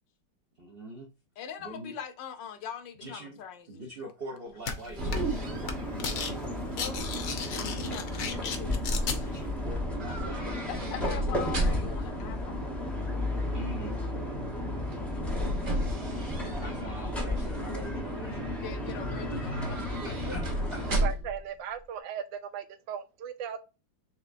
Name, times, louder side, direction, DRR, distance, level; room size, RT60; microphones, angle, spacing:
voice 1, 0.6-1.1 1.6-1.9 3.0-3.4 3.7-5.3 8.1-8.2 9.2-10.5 13.5-13.9 16.6-18.6 19.3-19.4 19.7-20.4 20.7-20.8, right 1 dB, 55° right, 0.6 m, -43 dB
voice 2, 1.4-3.9 6.8-7.0 7.9-8.8 10.7-12.7 18.6-20.0, left 8 dB, 80° left, 1.3 m, -42 dB
sound 1, 4.5-6.9 7.2-7.8 10.0-12.1 14.9-17.0 17.4-17.9 19.4-21.5 21.7-21.8, right 1 dB, 35° right, 1.0 m, -35 dB
sound 2, 4.7-4.8 5.1-5.4 5.6-6.3 6.6-9.2, left 6 dB, 60° left, 0.9 m, -34 dB
sound 3, 5.0-21.1, left 1 dB, ahead, 0.5 m, -33 dB
voice 3, 20.9-23.6, right 8 dB, 85° right, 1.3 m, -37 dB
4.3 x 3.4 x 2.5 m
omnidirectional pair, 2.0 m